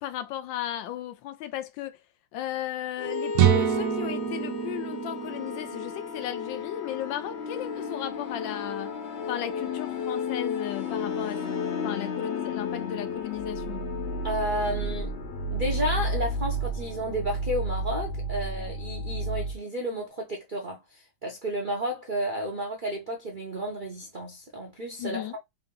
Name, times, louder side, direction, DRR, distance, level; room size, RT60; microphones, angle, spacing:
voice 1, 0.0-2.0 2.3-8.9 9.3-11.4 11.8-13.9 25.0-25.4, left 12 dB, 80° left, 1.2 m, -35 dB
sound 1, 3.0-19.6, left 2 dB, 50° left, 0.7 m, -32 dB
sound 2, 3.3-7.1, right 10 dB, 85° right, 0.7 m, -27 dB
voice 2, 14.2-15.1 15.5-25.4, right 1 dB, 50° right, 0.6 m, -32 dB
3.7 x 2.5 x 3.7 m
omnidirectional pair, 2.1 m